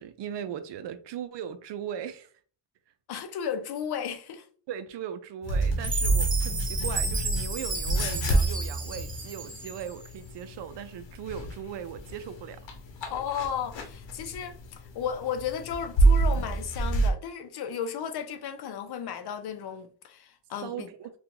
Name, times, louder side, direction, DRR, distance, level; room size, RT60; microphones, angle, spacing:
voice 1, 0.0-2.3 4.7-12.6 20.6-21.1, right 9 dB, 70° right, 0.5 m, -38 dB
voice 2, 3.1-4.5 13.1-20.9, left 8 dB, 60° left, 0.6 m, -34 dB
sound 1, 5.4-17.1, right 2 dB, 90° left, 0.9 m, -28 dB
Chime, 5.8-10.1, right 3 dB, 20° right, 0.5 m, -33 dB
2.9 x 2.4 x 3.6 m
wide cardioid pair, 180°, 43 cm